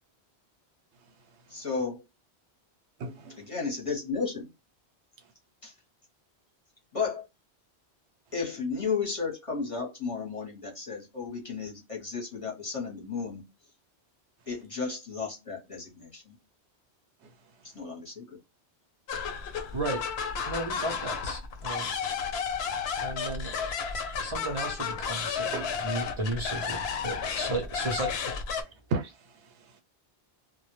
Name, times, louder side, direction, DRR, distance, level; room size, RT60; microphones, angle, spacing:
voice 1, 1.5-2.0 3.4-4.5 5.6-5.7 6.9-7.3 8.3-13.4 14.5-16.3 17.6-18.4, left 5 dB, 35° left, 0.8 m, -33 dB
voice 2, 3.0-3.4 17.2-17.3 25.5-25.6 28.6-29.8, right 4 dB, 85° right, 0.9 m, -36 dB
sound 1, 19.1-28.6, left 6 dB, 70° left, 0.8 m, -32 dB
voice 3, 19.7-20.0 20.5-21.9 23.0-23.5 24.2-25.5 25.8-28.1, right 2 dB, 40° right, 0.4 m, -34 dB
2.1 x 2.0 x 2.9 m
omnidirectional pair, 1.1 m